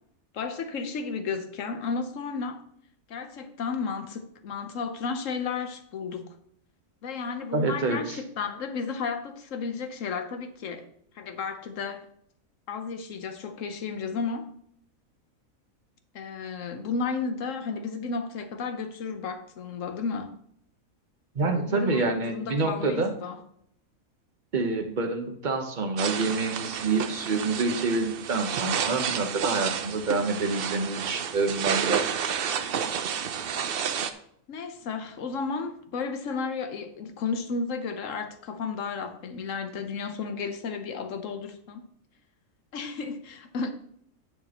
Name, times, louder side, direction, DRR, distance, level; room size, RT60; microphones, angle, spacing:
voice 1, 0.3-2.6 3.1-6.3 7.0-10.9 11.1-12.0 12.7-14.5 16.1-20.3 21.4-23.4 34.5-41.8 42.7-43.7, left 5 dB, 65° left, 1.3 m, -33 dB
voice 2, 7.5-8.2 21.3-23.1 24.5-32.0, right 3 dB, 35° right, 1.1 m, -27 dB
sound 1, 26.0-34.1, right 8 dB, 55° right, 0.6 m, -30 dB
10.5 x 6.5 x 3.0 m
omnidirectional pair, 1.5 m